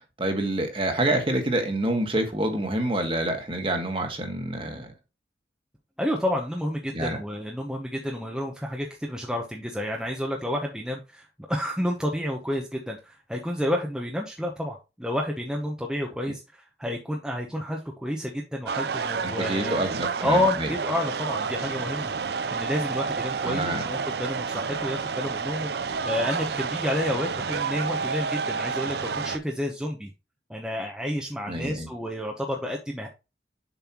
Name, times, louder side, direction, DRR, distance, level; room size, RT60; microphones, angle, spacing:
voice 1, 0.2-4.9 6.9-7.2 19.2-20.7 23.4-23.8 31.5-31.9, right 1 dB, 30° right, 1.5 m, -27 dB
voice 2, 6.0-19.8 20.2-22.1 22.5-30.1 30.5-33.1, left 1 dB, 5° right, 0.8 m, -30 dB
sound 1, 18.7-29.4, right 5 dB, 60° right, 0.5 m, -30 dB
7.1 x 5.5 x 3.0 m
head